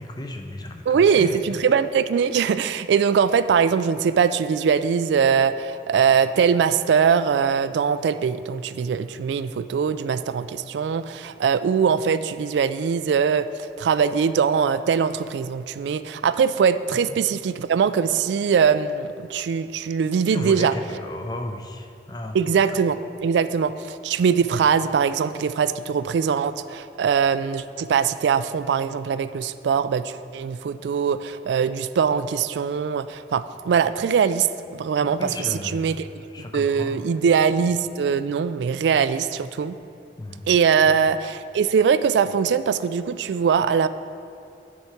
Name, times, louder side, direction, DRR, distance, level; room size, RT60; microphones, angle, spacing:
voice 1, 0.0-1.7 17.1-17.2 20.3-22.7 35.0-36.0 36.3-37.0 40.2-40.4 40.9-41.0, left 1 dB, 25° left, 4 dB, 0.5 m, -34 dB
voice 2, 0.9-20.7 22.3-36.0 36.5-39.8 40.5-43.9, right 6 dB, 80° right, 13 dB, 0.3 m, -22 dB
9.6 x 4.7 x 5.8 m, 2.5 s
head